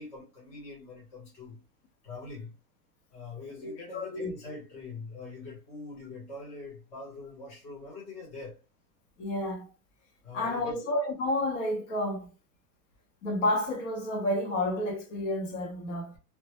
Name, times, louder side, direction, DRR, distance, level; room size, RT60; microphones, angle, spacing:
voice 1, 0.0-1.6 2.0-2.6 3.1-8.6 10.2-10.8, left 3 dB, 15° left, 0.5 m, -43 dB
voice 2, 3.6-4.3 9.2-9.7 10.3-12.3 13.2-16.2, left 1 dB, 50° left, 0.8 m, -30 dB
2.1 x 2.1 x 2.8 m
supercardioid pair, 155°, 48 cm